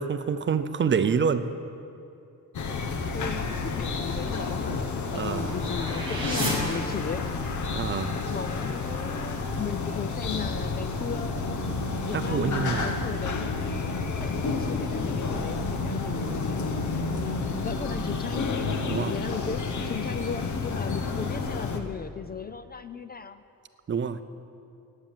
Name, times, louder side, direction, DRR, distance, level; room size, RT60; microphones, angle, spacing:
voice 1, 0.0-1.5 5.1-5.5 7.7-8.1 12.1-13.0 18.9-19.1 23.9-24.2, right 6 dB, 35° right, 11 dB, 0.6 m, -27 dB
sound 1, 2.5-21.8, left 4 dB, 60° left, 1.3 m, -30 dB
voice 2, 3.1-4.9 5.1-7.3 8.3-11.6 12.0-13.6 14.2-16.9 17.6-18.6 19.0-23.4, left 6 dB, 30° left, 12 dB, 0.4 m, -36 dB
sound 2, 4.2-7.6, right 1 dB, 15° right, 4.4 m, -35 dB
17.5 x 8.9 x 7.3 m, 2.6 s
cardioid pair, 150°, 34 cm